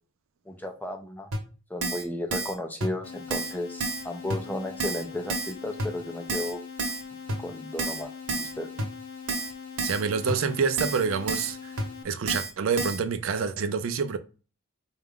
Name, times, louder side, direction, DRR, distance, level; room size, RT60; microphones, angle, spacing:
voice 1, 0.5-1.3 1.7-6.6 7.4-8.7, left 1 dB, 10° left, 0.4 m, -34 dB
Keyboard (musical), 1.3-1.4 1.8-2.0 2.3-2.5 2.8-2.9 3.3-3.5 3.8-4.0 4.3-4.4 4.8-5.0 5.3-5.5 5.8-5.9 6.3-6.5 6.8-7.0 7.3-7.4 7.8-8.0 8.3-8.5 8.8-8.9 9.3-9.5 9.8-10.0 10.3-10.4 10.8-11.0 11.3-11.5 11.8-11.9 12.3-12.5 12.8-13.0, right 3 dB, 80° right, 1.0 m, -29 dB
sound 1, 3.0-12.0, left 6 dB, 70° left, 0.8 m, -42 dB
voice 2, 9.8-11.7 12.0-14.2, right 5 dB, 60° right, 0.4 m, -27 dB
4.4 x 2.4 x 3.5 m
head